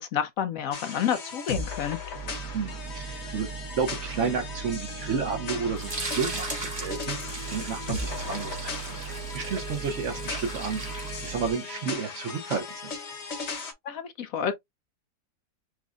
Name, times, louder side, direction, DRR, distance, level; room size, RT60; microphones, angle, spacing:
voice 1, 0.0-2.0 13.8-14.5, left 9 dB, 70° left, 0.9 m, -29 dB
sound 1, 0.7-13.7, left 4 dB, 50° left, 1.0 m, -37 dB
sound 2, 2.1-11.5, right 8 dB, 10° right, 0.6 m, -40 dB
voice 2, 2.2-3.5 3.8-6.5 6.7-8.9 9.3-12.9, right 5 dB, 55° right, 1.1 m, -31 dB
sound 3, 5.8-11.8, right 2 dB, 30° right, 1.5 m, -38 dB
6.0 x 2.4 x 2.4 m
omnidirectional pair, 1.7 m